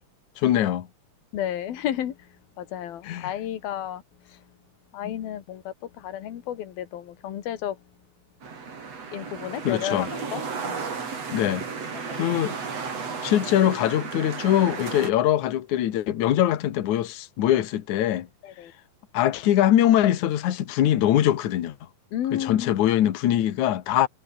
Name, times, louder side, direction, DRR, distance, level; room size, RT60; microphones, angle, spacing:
voice 1, 0.4-0.9 3.0-3.3 5.0-5.1 9.6-10.1 11.3-11.6 12.2-12.6 13.2-18.3 19.1-21.8 22.3-24.1, left 12 dB, 60° left, 2.7 m, -22 dB
voice 2, 1.3-2.2 2.6-4.0 4.9-7.8 9.1-10.9 12.1-12.3 18.4-18.7 22.1-22.7, left 11 dB, 85° left, 3.7 m, -32 dB
sound 1, 8.4-15.1, right 5 dB, 45° right, 4.7 m, -34 dB
omnidirectional pair, 4.1 m